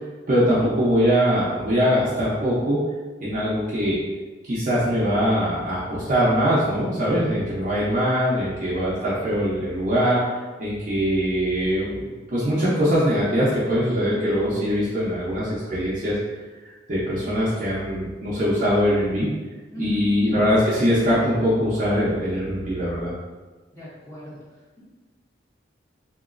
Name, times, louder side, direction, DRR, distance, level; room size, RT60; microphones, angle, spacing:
voice 1, 0.3-2.8 3.2-4.0 4.4-10.2 10.6-12.0 12.3-16.1 16.9-19.3 19.8-23.1, equal, 45° right, -8 dB, 0.6 m, -22 dB
voice 2, 23.7-24.4, equal, 15° left, -10 dB, 1.0 m, -38 dB
3.0 x 2.9 x 2.5 m, 1.3 s
head